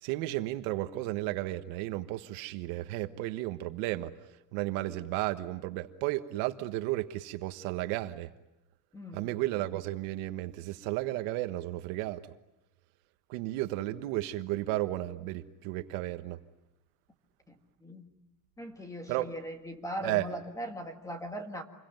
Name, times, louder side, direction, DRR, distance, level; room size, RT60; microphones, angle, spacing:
voice 1, 0.0-4.1 4.5-8.3 9.1-12.2 13.3-16.4 19.1-19.3 20.0-20.3, right 17 dB, 60° right, 10 dB, 1.4 m, -33 dB
voice 2, 8.9-9.3 17.5-18.1 18.6-21.6, equal, 10° left, 6 dB, 1.7 m, -40 dB
28.0 x 22.5 x 9.2 m, 0.93 s
cardioid pair, 175°, 42 cm